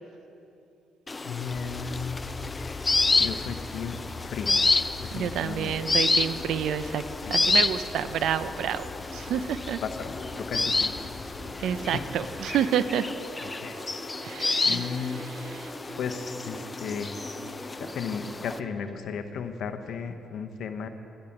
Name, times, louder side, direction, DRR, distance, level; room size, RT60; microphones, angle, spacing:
sound 1, 1.1-18.6, left 3 dB, 25° left, 0.5 m, -29 dB
voice 1, 1.2-2.2 2.5-2.9 3.2-4.7 5.0-5.7 7.3-7.7 9.8-11.1 11.9-12.0 13.6-13.8 14.6-15.2 16.0-17.2 17.8-20.9, left 6 dB, 70° left, 8 dB, 0.9 m, -35 dB
sound 2, 1.5-12.5, left 4 dB, 50° left, 3.0 m, -43 dB
voice 2, 5.1-8.9 9.1-9.8 11.6-13.1 14.2-15.7, right 9 dB, 80° right, 13 dB, 0.5 m, -29 dB
sound 3, 10.3-18.9, right 2 dB, 35° right, 1.4 m, -46 dB
11.5 x 11.0 x 5.9 m, 2.8 s
cardioid pair, 90°, 0 cm